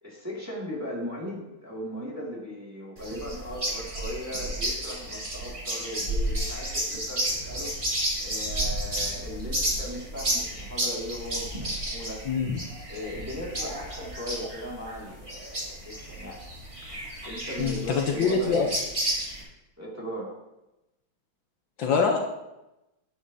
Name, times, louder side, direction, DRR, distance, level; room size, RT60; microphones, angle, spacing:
voice 1, 0.0-12.2 12.9-16.4 17.2-18.7 19.8-20.4, equal, 10° right, -5 dB, 2.0 m, -37 dB
sound 1, 3.0-19.4, right 1 dB, 25° right, 2.0 m, -32 dB
voice 2, 12.3-12.6 17.6-18.7 21.8-22.2, left 5 dB, 70° left, 2 dB, 1.4 m, -24 dB
9.8 x 9.4 x 2.7 m, 0.96 s
omnidirectional pair, 2.3 m